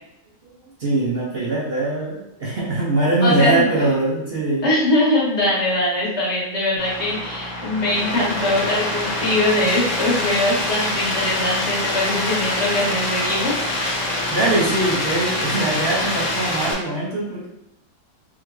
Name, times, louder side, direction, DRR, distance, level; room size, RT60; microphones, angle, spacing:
voice 1, 0.8-4.7 14.3-17.5, right 2 dB, 50° right, -5 dB, 0.8 m, -22 dB
voice 2, 3.2-3.6 4.6-13.5, left 1 dB, 40° left, -6 dB, 1.7 m, -21 dB
sound 1, 6.8-16.7, left 1 dB, 60° left, 0.4 m, -25 dB
3.7 x 3.3 x 3.1 m, 0.85 s
omnidirectional pair, 1.9 m